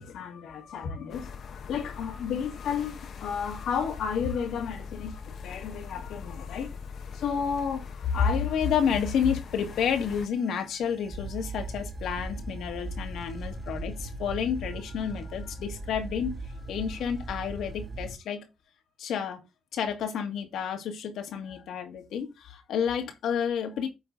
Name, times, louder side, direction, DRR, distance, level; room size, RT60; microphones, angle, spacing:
voice 1, 0.0-6.7 7.1-18.5 19.0-19.4 19.7-23.9, left 7 dB, 80° left, 1.8 m, -31 dB
sound 1, 1.1-10.3, left 5 dB, 60° left, 0.9 m, -42 dB
sound 2, 9.7-18.2, right 2 dB, 25° right, 2.0 m, -39 dB
9.1 x 4.0 x 3.9 m
cardioid pair, 90°, 0 cm